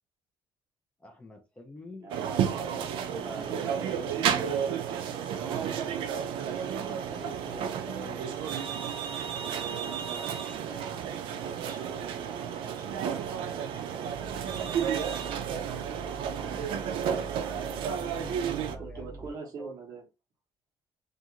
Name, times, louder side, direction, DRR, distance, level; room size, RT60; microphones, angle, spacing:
voice 1, 1.0-2.9 3.2-4.7 6.8-8.5 16.2-17.3 17.7-19.8, left 1 dB, 15° left, 0.4 m, -47 dB
voice 2, 2.0-4.7 5.2-7.3 9.4-10.9 11.4-15.0 18.8-20.0, right 6 dB, 40° right, 0.9 m, -44 dB
sound 1, 2.1-18.8, right 8 dB, 70° right, 0.4 m, -32 dB
sound 2, 14.1-19.3, right 2 dB, 50° left, 0.7 m, -45 dB
2.4 x 2.4 x 2.8 m
cardioid pair, 165°, 9 cm